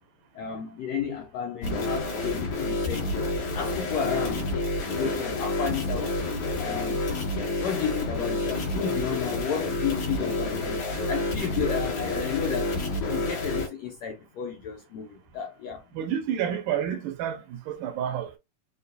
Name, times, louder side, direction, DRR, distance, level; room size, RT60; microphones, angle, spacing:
voice 1, 0.3-3.1 3.5-4.5 5.0-6.1 6.6-7.1 7.6-10.8 11.1-12.7 13.1-15.8, left 7 dB, 80° left, 1.6 m, -32 dB
sound 1, 1.6-13.7, left 2 dB, 60° left, 3.1 m, -29 dB
voice 2, 15.9-18.4, right 9 dB, 75° right, 2.1 m, -29 dB
6.6 x 2.4 x 2.6 m
omnidirectional pair, 3.9 m